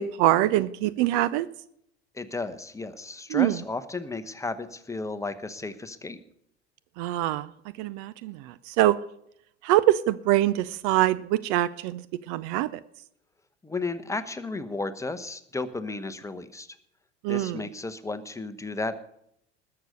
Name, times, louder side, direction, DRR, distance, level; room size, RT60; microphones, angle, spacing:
voice 1, 0.0-1.5 3.3-3.6 7.0-7.5 7.8-9.0 9.6-12.7 17.2-17.6, right 14 dB, 45° right, 17 dB, 0.6 m, -24 dB
voice 2, 2.1-6.2 13.6-16.7 17.3-18.9, left 3 dB, 10° left, 10 dB, 1.1 m, -33 dB
20.0 x 6.8 x 6.4 m, 0.72 s
figure-of-eight pair, 75°, 34 cm